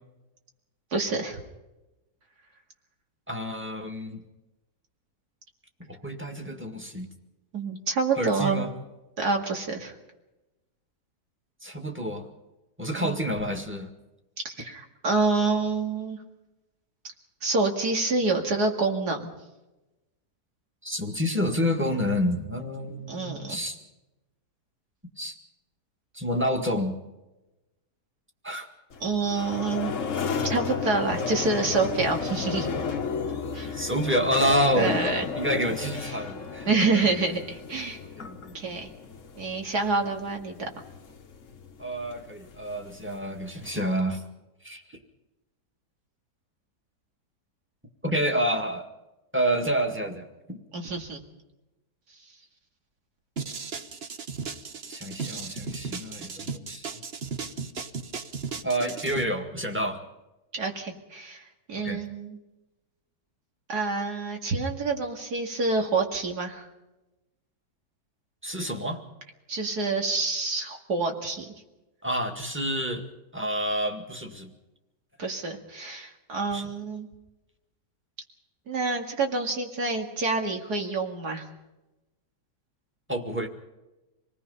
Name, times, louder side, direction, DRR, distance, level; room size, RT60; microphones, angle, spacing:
voice 1, 0.9-1.4 7.5-8.6 9.2-9.9 13.0-13.2 14.4-16.2 17.4-19.3 23.1-23.6 29.0-30.0 30.4-32.7 33.5-33.9 34.8-35.3 36.7-38.0 38.5-38.9 39.4-40.7 50.7-51.2 60.5-62.4 63.7-66.7 69.5-71.5 75.2-77.1 78.7-81.5, right 3 dB, 70° right, 3 dB, 2.9 m, -27 dB
voice 2, 3.3-4.2 5.8-7.1 8.2-8.7 11.6-12.3 12.8-13.9 20.8-23.8 25.2-25.4 26.1-27.0 28.4-28.7 33.7-35.0 35.4-37.1 38.2-38.5 41.8-44.2 44.6-44.8 48.0-48.9 49.3-50.6 54.9-56.9 58.6-60.1 61.8-62.0 68.4-69.0 72.0-73.1 73.3-74.5 76.5-76.7 83.1-83.5, equal, 5° right, 3 dB, 1.8 m, -28 dB
sound 1, 28.9-43.8, left 5 dB, 50° left, 1.6 m, -34 dB
sound 2, 53.4-59.2, right 5 dB, 40° right, 1.2 m, -35 dB
26.5 x 19.0 x 5.6 m, 1.0 s
omnidirectional pair, 1.8 m